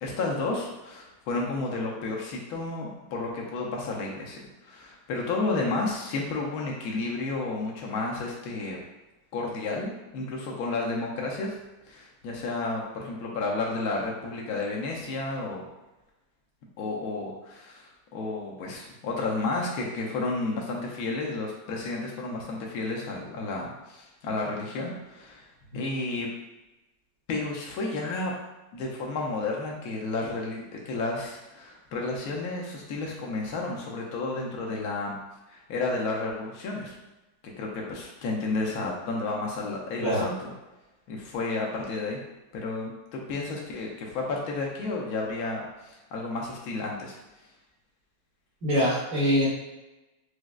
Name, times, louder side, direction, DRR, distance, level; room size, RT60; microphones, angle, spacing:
voice 1, 0.0-8.8 9.3-11.6 11.9-15.7 16.8-25.5 25.7-26.3 27.3-28.3 28.7-35.2 35.5-36.9 37.6-40.5 41.1-42.2 42.5-47.2, left 3 dB, 80° left, -2 dB, 0.8 m, -32 dB
voice 2, 48.6-49.5, equal, 55° right, -8 dB, 1.4 m, -23 dB
4.8 x 2.0 x 2.3 m, 1.0 s
omnidirectional pair, 2.3 m